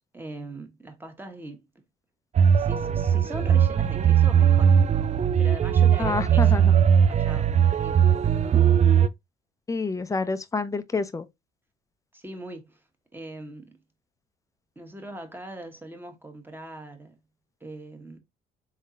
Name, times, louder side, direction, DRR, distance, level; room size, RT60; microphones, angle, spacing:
voice 1, 0.1-1.6 2.5-4.7 5.4-6.6 7.1-8.7 12.1-12.8 13.1-13.8 14.7-17.2 17.6-18.2, right 1 dB, 10° right, 1.4 m, -41 dB
sound 1, 2.4-9.1, right 8 dB, 35° right, 0.4 m, -19 dB
voice 2, 6.0-6.7 9.7-11.3, left 4 dB, 15° left, 0.6 m, -28 dB
3.7 x 3.7 x 2.7 m
supercardioid pair, 70°, 20 cm